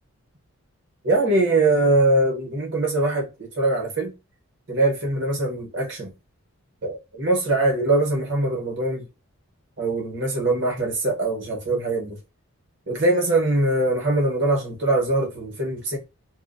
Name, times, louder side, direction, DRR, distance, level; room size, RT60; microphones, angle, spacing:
voice 1, 1.0-4.1 4.7-6.1 6.8-9.0 9.8-12.2 12.9-16.0, right 2 dB, 55° right, 1.0 m, -22 dB
2.5 x 2.2 x 2.5 m
head